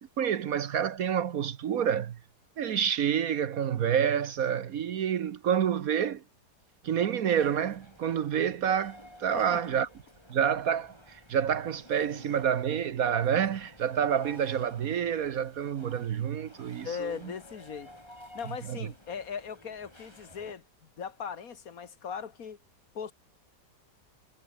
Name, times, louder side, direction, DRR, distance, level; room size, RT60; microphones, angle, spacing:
voice 1, 0.2-2.2 2.6-6.2 6.8-9.9 10.3-17.1 18.7-18.8, right 8 dB, 60° right, 1.2 m, -28 dB
sound 1, 7.3-20.5, left 1 dB, 15° left, 6.2 m, -53 dB
voice 2, 9.3-9.8 16.8-17.9 18.3-22.6 22.9-23.1, left 6 dB, 55° left, 1.7 m, -39 dB
omnidirectional pair, 1.9 m